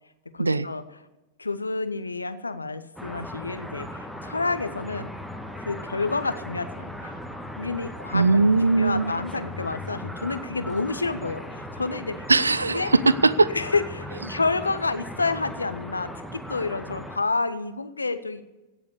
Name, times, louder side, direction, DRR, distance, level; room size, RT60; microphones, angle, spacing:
voice 1, 0.3-0.8 1.4-5.1 5.6-7.1 7.6-8.4 8.7-12.3 12.7-12.9 13.5-18.4, left 3 dB, 80° left, 12 dB, 0.8 m, -29 dB
sound 1, 3.0-17.2, left 1 dB, ahead, 1.4 m, -38 dB
voice 2, 8.1-9.1 12.3-13.5 14.3-14.4, right 3 dB, 80° right, 20 dB, 0.4 m, -20 dB
16.5 x 7.3 x 8.3 m, 1.1 s
figure-of-eight pair, 90°, 0 cm